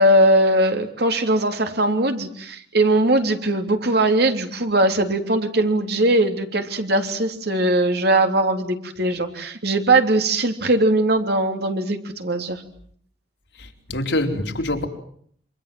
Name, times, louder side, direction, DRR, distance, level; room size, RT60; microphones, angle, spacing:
voice 1, 0.0-12.6, right 1 dB, 65° right, 3.4 m, -20 dB
voice 2, 13.6-14.9, left 1 dB, 85° left, 4.4 m, -25 dB
28.0 x 26.5 x 7.8 m
head